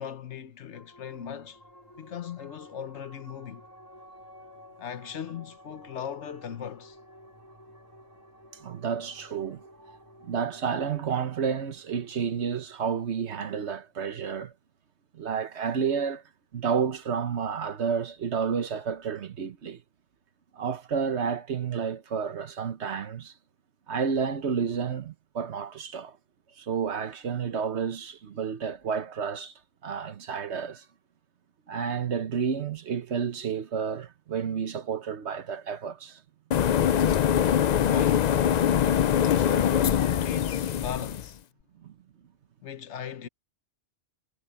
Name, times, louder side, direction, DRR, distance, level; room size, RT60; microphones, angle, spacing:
voice 1, 0.0-1.6 2.0-3.6 4.8-7.0 37.9-38.4 39.2-41.4 42.6-43.3, left 8 dB, 80° left, 1.2 m, -38 dB
sound 1, 0.7-13.6, equal, 20° left, 3.5 m, -53 dB
voice 2, 8.6-9.6 9.9-10.0 10.2-14.5 15.1-16.2 16.5-19.8 20.5-23.3 23.9-26.2 26.6-29.5 29.8-30.8 31.7-36.2 41.8-41.9, right 6 dB, 70° right, 1.3 m, -30 dB
sound 2, 36.5-41.3, left 9 dB, 60° left, 0.4 m, -23 dB
omnidirectional pair, 1.2 m